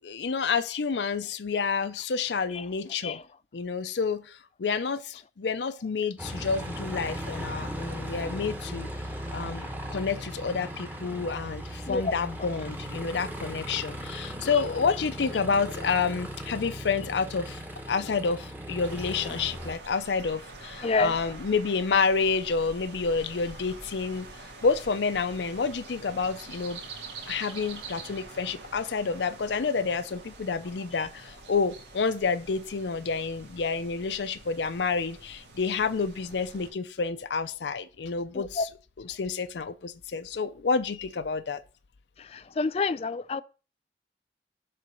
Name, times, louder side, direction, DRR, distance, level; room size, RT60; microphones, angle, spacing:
voice 1, 0.0-3.2 3.5-8.9 9.3-17.6 17.9-24.3 24.6-26.8 27.3-38.7 39.0-41.6, left 5 dB, 85° left, 0.5 m, -29 dB
Aircraft, 6.2-19.7, equal, 10° right, 0.9 m, -37 dB
sound 1, 18.8-36.7, right 3 dB, 90° right, 1.9 m, -46 dB
voice 2, 20.8-21.2 38.3-38.7 42.2-43.4, left 3 dB, 35° left, 0.3 m, -28 dB
7.7 x 4.0 x 6.9 m
head